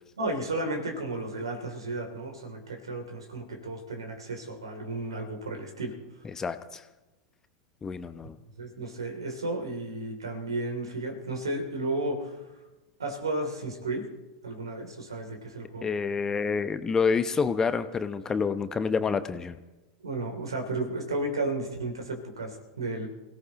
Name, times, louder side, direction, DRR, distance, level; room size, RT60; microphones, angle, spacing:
voice 1, 0.2-5.9 8.6-12.4 13.0-14.1 14.4-15.9 20.0-23.1, right 2 dB, 80° right, 4 dB, 2.9 m, -33 dB
voice 2, 6.3-6.8 7.8-8.3 15.8-19.6, left 5 dB, 20° left, 11 dB, 0.9 m, -28 dB
28.0 x 17.5 x 3.0 m, 1.1 s
figure-of-eight pair, 85°, 3 cm